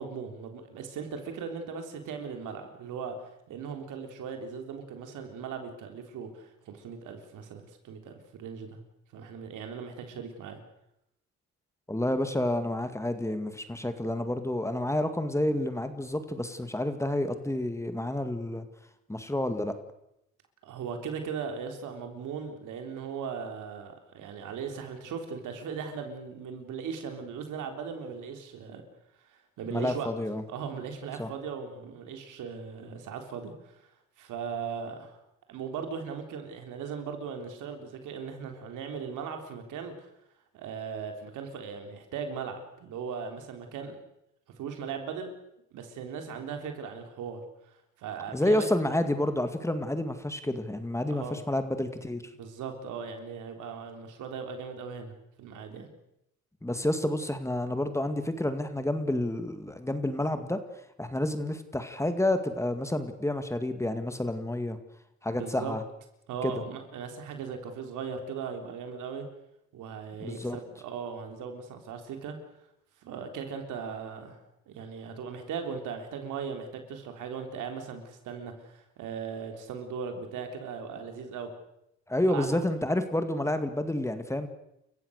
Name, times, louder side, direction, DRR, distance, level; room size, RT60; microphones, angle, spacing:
voice 1, 0.0-8.8 9.1-10.6 20.6-28.8 29.3-30.1 30.5-33.8 34.2-35.2 35.5-40.1 40.5-44.0 44.6-45.3 45.7-48.7 51.1-51.4 52.4-55.9 65.3-65.7 66.3-69.3 69.7-72.4 73.0-81.5 82.3-82.5, right 6 dB, 85° right, 5 dB, 3.7 m, -38 dB
voice 2, 11.9-18.7 19.1-19.7 29.7-30.4 31.2-31.3 48.3-52.2 56.6-60.6 61.0-64.8 65.2-65.8 66.4-66.5 70.2-70.6 82.1-84.5, left 1 dB, 10° left, 9 dB, 2.1 m, -29 dB
29.5 x 15.0 x 6.6 m, 0.83 s
cardioid pair, 90°, 30 cm